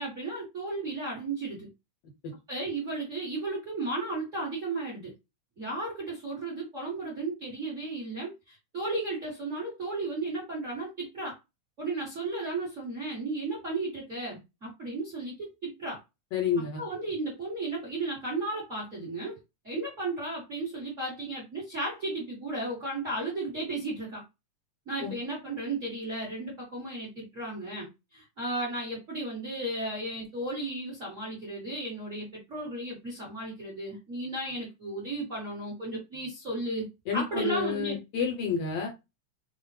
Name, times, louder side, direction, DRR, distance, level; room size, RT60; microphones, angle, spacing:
voice 1, 0.0-1.7 2.5-5.1 5.6-11.4 11.8-16.0 16.8-19.4 19.6-24.2 24.9-36.9 37.1-38.0, right 2 dB, 40° right, 1.0 m, -34 dB
voice 2, 16.3-16.8 25.0-25.1 37.1-38.9, left 6 dB, 65° left, 1.6 m, -29 dB
5.5 x 2.0 x 3.2 m
omnidirectional pair, 3.4 m